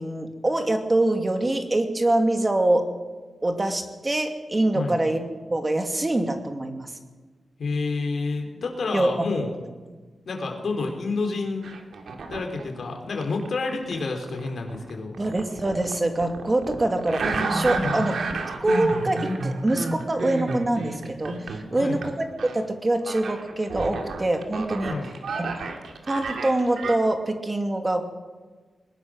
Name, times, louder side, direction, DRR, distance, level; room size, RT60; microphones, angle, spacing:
voice 1, 0.0-2.9 3.4-5.2 5.5-6.9 8.9-9.1 15.2-18.2 18.6-22.3 22.5-25.0 25.4-25.5 26.1-28.0, right 1 dB, 25° right, 5 dB, 2.4 m, -24 dB
voice 2, 7.6-9.6 10.3-11.7 12.3-15.1 17.8-18.1 21.7-22.0 24.9-25.1, left 3 dB, 65° left, 2 dB, 3.8 m, -29 dB
sound 1, 11.6-12.7 13.2-22.1 22.4-22.6 23.1-27.0, right 3 dB, 85° right, 2.5 m, -31 dB
21.0 x 20.0 x 6.4 m, 1.4 s
wide cardioid pair, 115°, 0 cm